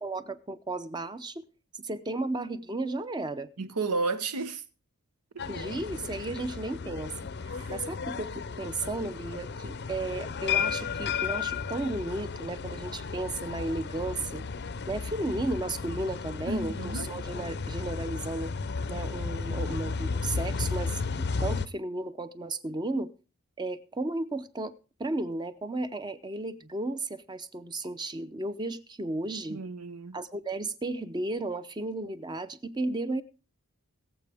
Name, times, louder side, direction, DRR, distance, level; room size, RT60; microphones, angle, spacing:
voice 1, 0.0-1.4 1.7-3.5 5.5-7.1 7.7-14.4 14.9-18.5 18.9-23.1 23.6-24.7 25.0-29.6 30.1-33.2, right 2 dB, 20° right, 0.6 m, -34 dB
voice 2, 3.6-4.6 5.3-5.6 7.5-7.8 16.5-17.1 29.5-30.2, right 3 dB, 90° right, 1.0 m, -33 dB
sound 1, 5.4-21.7, left 5 dB, 50° left, 0.6 m, -34 dB
21.5 x 7.5 x 3.4 m
head